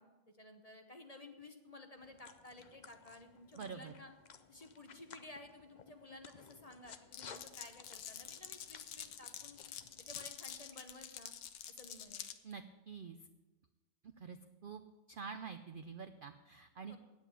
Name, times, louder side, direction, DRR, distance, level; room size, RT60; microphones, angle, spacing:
voice 1, 0.0-4.1 4.5-9.6 10.0-11.3 11.7-12.3 16.9-17.0, left 2 dB, 30° left, 5 dB, 0.8 m, -55 dB
sound 1, 2.0-10.2, left 6 dB, 60° left, 0.4 m, -58 dB
voice 2, 3.6-3.9 12.4-13.2 14.2-14.4 14.6-14.8 15.1-17.0, right 6 dB, 70° right, 9 dB, 0.5 m, -47 dB
Glass, 7.1-12.4, left 9 dB, 75° left, 1.2 m, -48 dB
9.3 x 8.3 x 8.1 m, 1.1 s
omnidirectional pair, 1.5 m